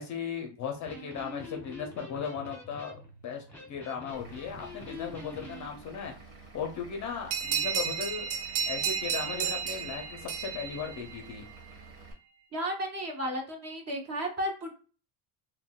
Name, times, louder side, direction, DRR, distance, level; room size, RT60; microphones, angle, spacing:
voice 1, 0.0-2.9 3.2-6.1 6.5-8.3 8.6-11.4, left 6 dB, 35° left, 3 dB, 0.5 m, -37 dB
Electric guitar, 0.7-5.7, left 2 dB, 5° left, 0.9 m, -46 dB
Vehicle / Engine, 4.1-12.1, right 3 dB, 65° right, 1.4 m, -51 dB
sound 1, 7.3-11.5, right 7 dB, 85° right, 0.8 m, -33 dB
voice 2, 12.5-14.7, equal, 30° right, 2 dB, 0.8 m, -33 dB
3.7 x 2.2 x 2.2 m, 0.37 s
cardioid pair, 145°, 50 cm